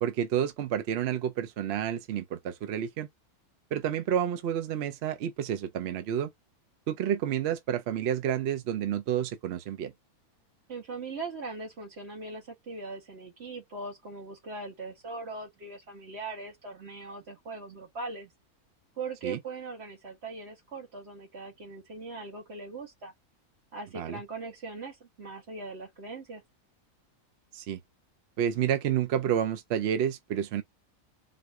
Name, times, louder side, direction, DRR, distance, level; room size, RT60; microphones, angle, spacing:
voice 1, 0.0-3.1 3.7-6.3 6.9-9.9 19.2-19.4 23.9-24.2 27.5-27.8 28.4-30.6, right 9 dB, 65° right, 0.6 m, -29 dB
voice 2, 10.7-18.3 19.0-23.1 23.7-26.4, right 3 dB, 45° right, 1.7 m, -40 dB
4.1 x 2.6 x 4.5 m
omnidirectional pair, 1.6 m